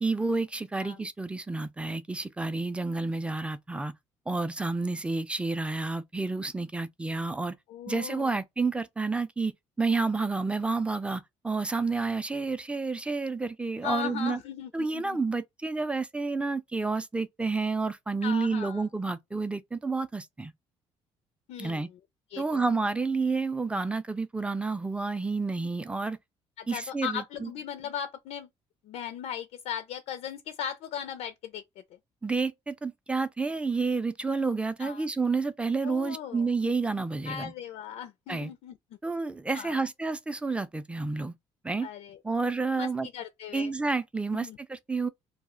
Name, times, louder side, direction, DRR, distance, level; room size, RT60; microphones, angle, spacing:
voice 1, 0.0-3.9 4.3-7.6 7.9-9.5 9.8-14.4 14.7-20.5 21.6-21.9 22.4-26.2 26.7-27.5 32.2-37.5 38.3-38.5 39.0-41.3 41.6-41.9 42.2-43.1 43.5-45.1, right 3 dB, 10° right, 0.4 m, -30 dB
voice 2, 7.7-8.4 13.8-15.2 18.2-18.8 21.5-22.0 22.3-22.7 26.6-28.5 28.8-31.6 34.8-35.1 35.8-36.5 37.3-38.8 39.5-39.9 41.8-42.2 42.8-43.7 44.3-44.6, left 8 dB, 70° left, 0.4 m, -38 dB
2.4 x 2.1 x 3.5 m
supercardioid pair, 80°, 12 cm